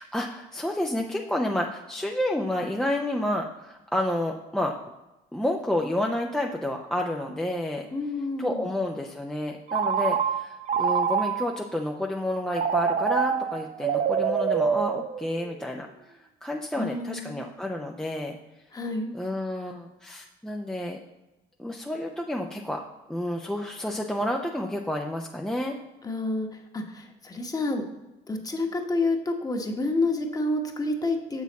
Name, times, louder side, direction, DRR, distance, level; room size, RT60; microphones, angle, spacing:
voice 1, 0.0-4.7 5.3-7.8 8.4-18.4 19.1-21.0 21.6-22.8 23.1-25.8, left 1 dB, 5° left, 0 dB, 0.5 m, -30 dB
voice 2, 7.9-8.6 16.8-17.4 18.7-19.2 26.0-26.5 26.7-27.8 28.3-31.4, left 2 dB, 20° left, 3 dB, 1.1 m, -28 dB
Telephone, 9.7-11.7 12.5-15.6, right 7 dB, 45° right, 0.5 m, -26 dB
7.0 x 6.4 x 4.1 m, 1.0 s
cardioid pair, 110°, 17 cm